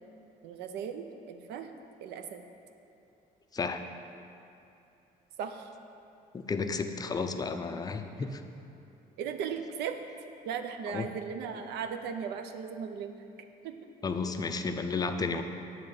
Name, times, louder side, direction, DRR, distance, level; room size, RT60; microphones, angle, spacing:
voice 1, 0.4-1.7 2.0-2.4 5.4-5.7 9.2-10.0 10.4-13.2 13.6-13.7, right 7 dB, 80° right, 7 dB, 0.6 m, -37 dB
voice 2, 6.3-8.4 10.9-11.1 14.0-15.4, left 4 dB, 20° left, 7 dB, 0.4 m, -32 dB
8.4 x 3.6 x 6.6 m, 2.8 s
cardioid pair, 110°, 17 cm